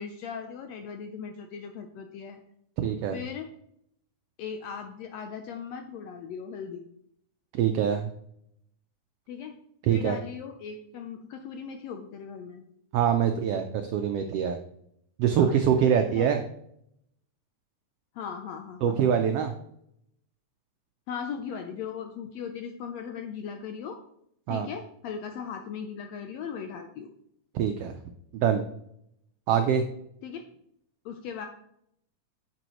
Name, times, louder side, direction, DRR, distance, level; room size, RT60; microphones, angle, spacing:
voice 1, 0.0-2.4 3.1-3.5 4.4-6.9 9.3-9.6 9.9-12.6 15.4-16.3 18.2-19.1 21.1-24.0 24.5-27.1 30.2-30.4 31.1-31.5, left 6 dB, 75° left, 5 dB, 1.7 m, -38 dB
voice 2, 2.8-3.2 7.5-8.1 9.8-10.2 12.9-14.6 15.2-16.4 18.8-19.5 24.5-24.7 27.5-27.9 28.3-28.6 29.5-29.9, right 8 dB, 90° right, 6 dB, 1.3 m, -24 dB
9.0 x 7.0 x 3.0 m, 0.72 s
omnidirectional pair, 3.5 m